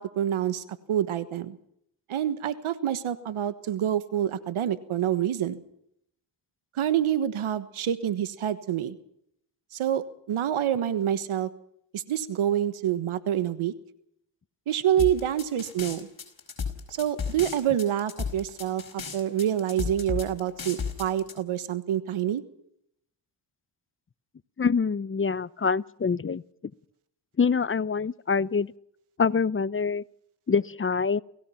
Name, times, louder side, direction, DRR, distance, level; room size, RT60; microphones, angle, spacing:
voice 1, 0.0-1.6 2.1-5.6 6.8-9.0 9.7-11.5 11.9-13.7 14.7-16.1 16.9-22.4, right 10 dB, 80° right, 1.6 m, -27 dB
sound 1, 15.0-21.3, left 6 dB, 45° left, 5.2 m, -34 dB
voice 2, 24.6-26.4 27.4-28.7 29.2-30.0 30.5-31.2, left 5 dB, 25° left, 0.7 m, -25 dB
29.0 x 16.5 x 5.8 m
cardioid pair, 65°, 49 cm